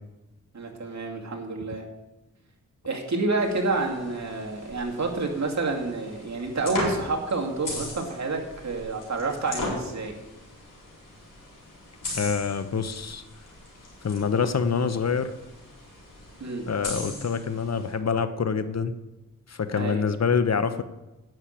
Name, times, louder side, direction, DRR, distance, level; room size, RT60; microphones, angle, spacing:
voice 1, 0.5-1.9 2.8-10.1 16.4-16.7 19.8-20.0, right 3 dB, 55° right, 0 dB, 2.4 m, -29 dB
sound 1, 3.4-17.9, left 2 dB, 75° left, 4.6 m, -39 dB
voice 2, 12.1-13.2 14.0-15.3 16.7-18.9 19.5-20.8, left 6 dB, 55° left, 11 dB, 0.8 m, -26 dB
10.5 x 6.6 x 8.7 m, 1.0 s
cardioid pair, 65°, 32 cm